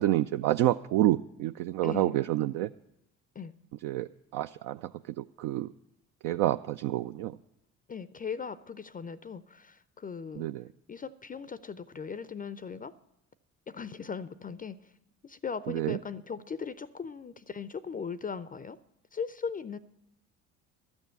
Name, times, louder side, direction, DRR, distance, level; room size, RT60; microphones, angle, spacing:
voice 1, 0.0-2.7 3.8-5.7 6.2-7.4 10.4-10.6 15.7-16.0, right 14 dB, 60° right, 9 dB, 0.5 m, -28 dB
voice 2, 1.8-2.2 3.3-3.5 7.9-10.5 10.9-12.9 13.7-14.9 15.2-18.8 19.1-19.8, left 6 dB, 20° left, 17 dB, 0.5 m, -38 dB
12.5 x 7.1 x 8.1 m, 0.83 s
hypercardioid pair, 55°, 38 cm